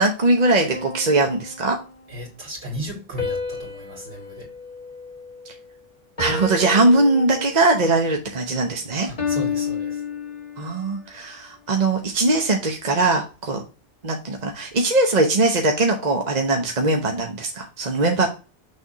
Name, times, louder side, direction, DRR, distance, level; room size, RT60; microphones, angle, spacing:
voice 1, 0.0-1.8 6.2-9.1 10.6-13.6 14.0-18.3, right 2 dB, 40° right, 1.0 m, -20 dB
sound 1, 0.7-2.2 3.2-5.7 6.2-7.8 9.2-10.9, left 5 dB, 30° left, 2.3 m, -31 dB
voice 2, 2.1-4.5 9.1-10.0, equal, 60° right, 2.9 m, -35 dB
6.5 x 3.6 x 4.7 m
omnidirectional pair, 1.2 m